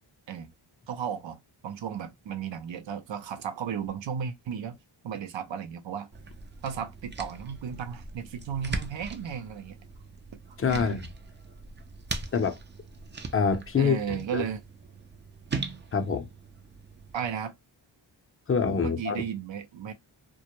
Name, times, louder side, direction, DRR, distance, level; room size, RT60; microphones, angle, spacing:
voice 1, 0.9-4.8 5.0-6.1 6.6-9.8 10.7-11.0 13.8-14.6 17.1-17.5 18.8-19.9, right 8 dB, 70° right, 0.6 m, -34 dB
sound 1, 6.1-17.3, right 3 dB, 25° right, 0.4 m, -40 dB
voice 2, 10.6-11.1 12.3-12.6 13.3-14.5 15.9-16.3 18.5-19.3, left 6 dB, 30° left, 0.6 m, -26 dB
2.2 x 2.0 x 2.9 m
cardioid pair, 50°, 47 cm